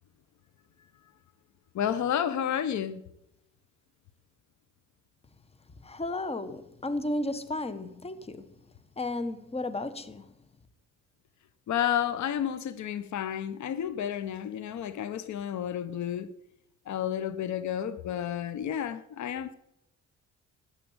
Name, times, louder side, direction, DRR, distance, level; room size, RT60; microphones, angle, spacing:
voice 1, 1.7-3.0 11.7-16.3 16.9-19.6, left 9 dB, 70° left, 0.9 m, -31 dB
voice 2, 5.8-8.4 9.0-10.2, left 2 dB, 20° left, 1.3 m, -33 dB
13.5 x 8.5 x 8.9 m
cardioid pair, 90°, 30 cm